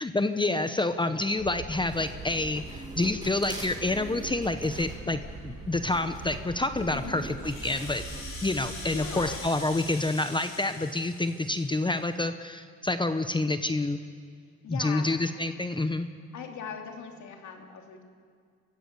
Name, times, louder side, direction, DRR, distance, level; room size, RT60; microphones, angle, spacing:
voice 1, 0.0-8.0 8.4-14.0 14.7-16.1, left 2 dB, 15° left, 9 dB, 0.8 m, -28 dB
sound 1, 1.4-9.4, right 3 dB, 85° right, 5.4 m, -43 dB
sound 2, 1.8-8.2, right 1 dB, 15° right, 5.7 m, -44 dB
voice 2, 6.9-7.3 8.9-9.4 14.6-15.1 16.3-18.0, left 6 dB, 70° left, 3 dB, 2.9 m, -39 dB
Rattle (instrument), 7.3-12.1, left 3 dB, 45° left, 4.7 m, -43 dB
25.0 x 16.0 x 6.9 m, 2.1 s
cardioid pair, 90°, 30 cm